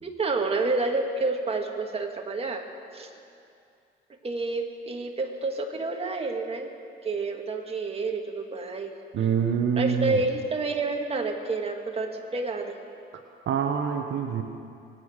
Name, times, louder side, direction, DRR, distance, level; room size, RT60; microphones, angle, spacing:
voice 1, 0.0-2.6 2.9-3.1 4.2-6.7 7.0-9.0 9.8-12.8, right 3 dB, 30° right, 2 dB, 1.9 m, -29 dB
voice 2, 9.1-10.2 13.5-14.4, right 7 dB, 70° right, 4 dB, 1.1 m, -25 dB
24.0 x 9.2 x 6.5 m, 2.4 s
cardioid pair, 90°, 20 cm